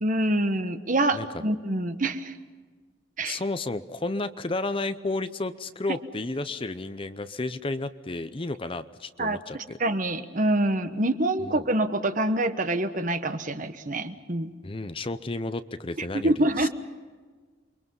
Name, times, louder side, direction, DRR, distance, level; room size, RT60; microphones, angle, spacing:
voice 1, 0.0-2.3 3.2-3.4 9.2-9.4 9.8-14.5 16.0-16.7, right 1 dB, 45° right, 9 dB, 1.2 m, -26 dB
voice 2, 3.2-9.8 11.4-11.6 14.6-16.7, left 2 dB, 30° left, 12 dB, 0.6 m, -32 dB
29.0 x 23.5 x 5.5 m, 1.4 s
head